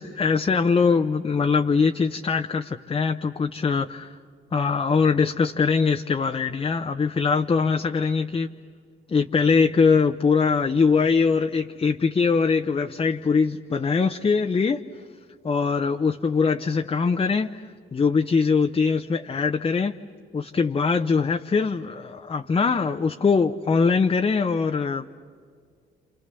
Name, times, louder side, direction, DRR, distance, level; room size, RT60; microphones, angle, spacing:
voice 1, 0.0-4.1 4.5-8.5 9.1-14.8 15.4-17.6 17.9-19.9 20.3-25.1, left 5 dB, 25° left, 6 dB, 0.8 m, -22 dB
29.0 x 27.5 x 6.9 m, 2.1 s
cardioid pair, 90°, 20 cm